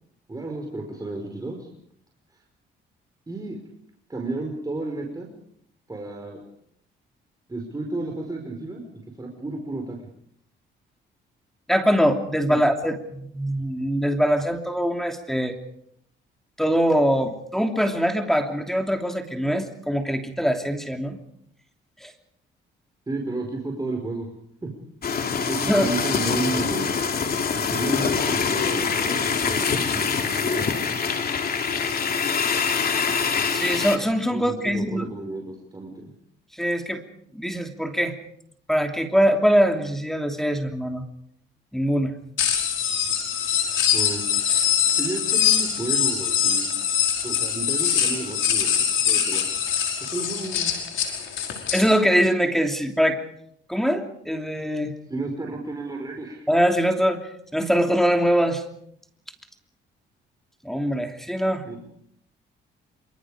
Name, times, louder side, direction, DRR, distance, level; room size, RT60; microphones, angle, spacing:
voice 1, 0.3-1.7 3.3-3.6 4.1-5.3 5.9-6.4 7.5-8.8 9.2-10.0 12.5-12.6 23.1-24.3 24.6-24.7 25.5-26.9 27.5-30.9 34.3-36.1 43.9-44.2 45.0-46.7 47.2-49.5 50.1-50.7 55.1-56.5 61.6-61.8, right 2 dB, 20° right, 1 dB, 5.2 m, -32 dB
voice 2, 11.7-15.6 16.6-21.2 22.0-22.1 25.6-25.9 33.1-33.2 33.5-35.1 36.5-37.0 37.3-38.2 38.7-41.0 41.7-42.2 51.7-53.2 53.7-54.9 56.5-57.2 57.5-58.6 60.6-61.6, equal, ahead, 4 dB, 3.1 m, -23 dB
sound 1, 25.0-34.0, left 6 dB, 50° left, 3.2 m, -24 dB
sound 2, 42.4-51.8, left 9 dB, 75° left, 5.4 m, -23 dB
26.5 x 25.5 x 5.1 m, 0.70 s
cardioid pair, 90°, 20 cm